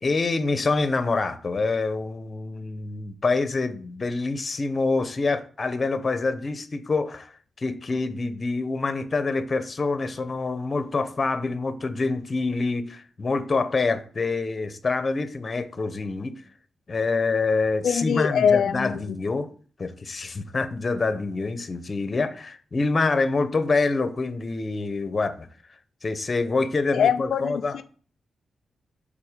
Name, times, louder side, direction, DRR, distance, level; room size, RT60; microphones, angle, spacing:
voice 1, 0.0-7.3 7.6-16.4 16.9-19.5 19.8-25.5 26.0-27.8, left 3 dB, 40° left, 0.8 m, -26 dB
voice 2, 17.8-19.2 26.9-27.8, left 7 dB, 85° left, 0.3 m, -23 dB
5.8 x 4.1 x 5.1 m
cardioid pair, 80°, 0 cm